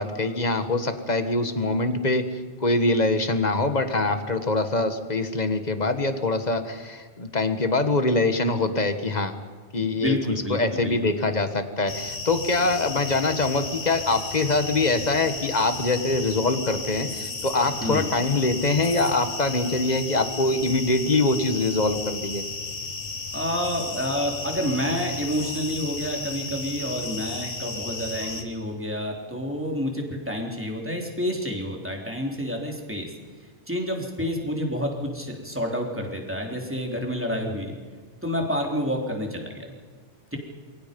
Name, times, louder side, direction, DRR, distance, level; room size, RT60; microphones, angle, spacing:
voice 1, 0.0-9.4 9.7-22.4, left 2 dB, 35° left, 9 dB, 1.6 m, -24 dB
voice 2, 9.8-11.0 17.8-18.1 23.3-33.1 33.7-37.7 38.2-39.7 40.3-40.4, equal, 10° right, 1 dB, 3.5 m, -29 dB
sound 1, 11.9-28.4, left 3 dB, 75° left, 2.2 m, -34 dB
28.0 x 23.0 x 5.3 m, 1.5 s
omnidirectional pair, 1.2 m